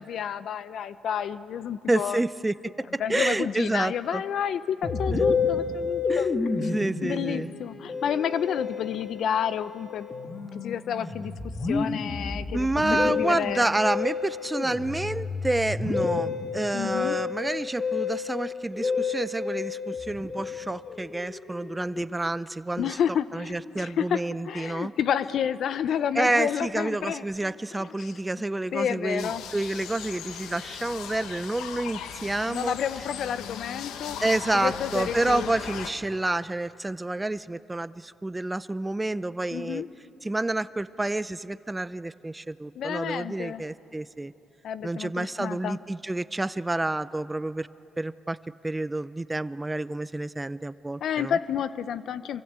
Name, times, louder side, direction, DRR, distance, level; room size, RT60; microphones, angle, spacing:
voice 1, 0.0-2.2 3.0-6.3 6.6-6.7 7.0-10.1 10.5-11.3 11.6-13.7 16.7-17.2 22.8-24.2 24.5-28.1 28.7-29.4 32.5-34.2 34.5-35.5 39.5-39.9 42.7-43.6 44.6-45.8 51.0-52.4, left 8 dB, 70° left, 14 dB, 0.8 m, -30 dB
voice 2, 1.9-4.2 5.1-5.2 6.1-6.3 6.7-7.5 12.5-23.0 23.3-24.9 26.2-32.7 34.2-39.8 40.2-44.3 44.8-47.7 48.0-48.4 48.6-51.4, right 2 dB, 15° right, 16 dB, 0.6 m, -29 dB
Musical instrument, 4.8-22.4, left 5 dB, 35° left, 1.8 m, -30 dB
sound 1, 29.2-35.9, left 8 dB, 90° left, 1.3 m, -38 dB
28.0 x 24.5 x 8.2 m, 2.8 s
cardioid pair, 90°, 0 cm